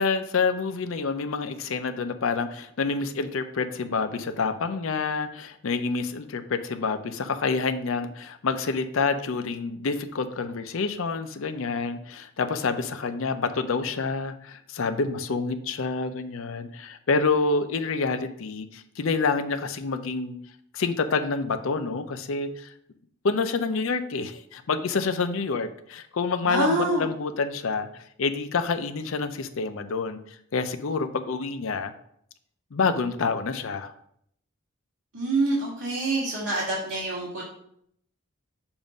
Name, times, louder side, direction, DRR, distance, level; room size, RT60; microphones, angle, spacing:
voice 1, 0.0-20.4 20.7-22.7 23.2-30.2 30.5-31.9 32.7-33.9, left 4 dB, 70° left, 9 dB, 0.5 m, -28 dB
voice 2, 26.5-27.0 35.1-37.4, right 2 dB, 80° right, -8 dB, 1.7 m, -26 dB
7.1 x 2.6 x 5.0 m, 0.69 s
head